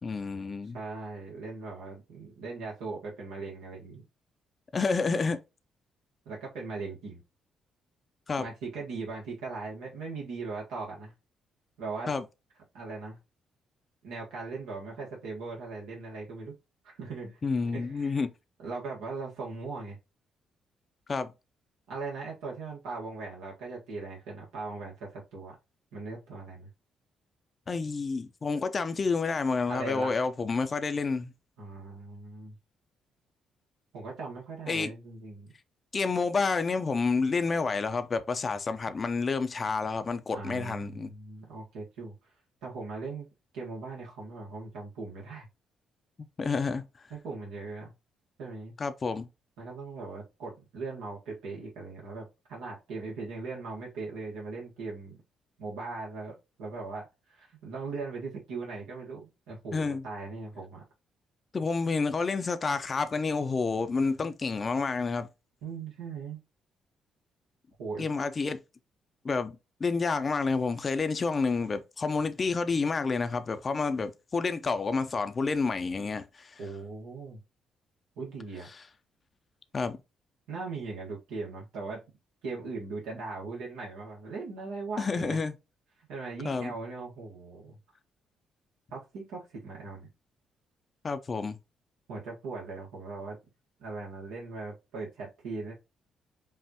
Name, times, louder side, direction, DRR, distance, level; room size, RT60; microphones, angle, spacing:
voice 1, 0.0-0.8 4.7-5.4 8.3-8.5 12.1-12.2 17.4-18.3 21.1-21.3 27.7-31.3 34.7-34.9 35.9-41.1 46.4-46.8 48.8-49.3 59.7-60.0 61.5-65.3 68.0-68.6 69.2-76.6 79.7-80.0 85.0-85.5 86.4-86.7 91.0-91.6, left 4 dB, 40° left, 0.5 m, -29 dB
voice 2, 0.7-4.0 6.2-7.2 8.4-11.1 11.8-12.1 12.7-13.2 14.0-16.5 16.8-17.4 17.7-18.2 18.6-20.0 21.9-25.6 25.9-26.7 29.7-30.1 31.6-32.5 33.9-35.5 40.3-42.3 42.6-43.3 43.5-45.5 47.1-47.9 48.4-48.7 49.6-55.2 55.6-60.8 65.6-66.4 67.8-68.1 76.6-77.4 78.2-78.7 80.5-82.0 82.4-85.4 86.0-87.8 88.9-90.1 92.1-93.4 93.8-95.7, right 3 dB, 90° right, 1.4 m, -39 dB
5.5 x 2.5 x 2.8 m
cardioid pair, 75°, 0 cm